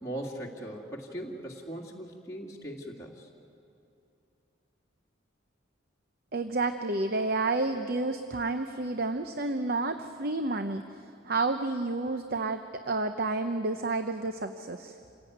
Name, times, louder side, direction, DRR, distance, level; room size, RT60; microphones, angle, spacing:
voice 1, 0.0-3.3, right 1 dB, 15° left, -4 dB, 2.2 m, -39 dB
voice 2, 6.3-10.8 11.2-14.9, right 3 dB, 45° right, 8 dB, 0.8 m, -30 dB
27.5 x 17.0 x 9.3 m, 2.6 s
head